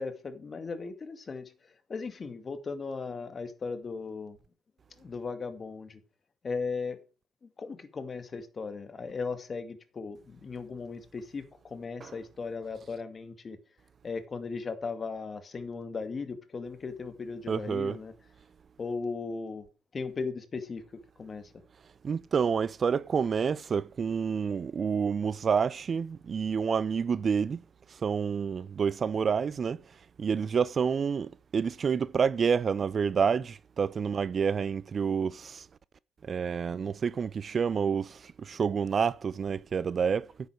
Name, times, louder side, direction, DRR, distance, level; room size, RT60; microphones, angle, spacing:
voice 1, 0.0-4.4 5.0-6.0 6.4-7.0 7.4-13.6 14.0-18.1 18.8-19.7 19.9-20.8 21.2-21.5, left 4 dB, 40° left, 2.2 m, -37 dB
voice 2, 17.5-18.0 22.0-27.6 28.0-29.8 30.2-35.7 36.2-40.3, right 6 dB, 45° right, 0.5 m, -28 dB
10.0 x 8.1 x 6.3 m
supercardioid pair, 70°, 0 cm